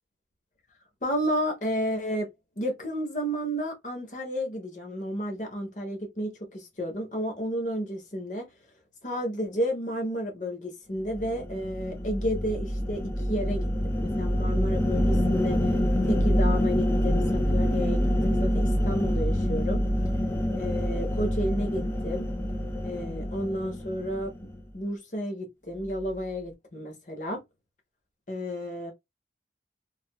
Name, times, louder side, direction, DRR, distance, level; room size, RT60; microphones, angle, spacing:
voice 1, 1.0-2.3 2.6-8.5 9.0-15.7 16.0-19.9 20.6-22.3 22.8-27.4 28.3-28.9, equal, 45° left, 0.9 m, -32 dB
sound 1, 11.1-24.6, equal, 15° left, 0.5 m, -26 dB
3.2 x 2.4 x 2.2 m
head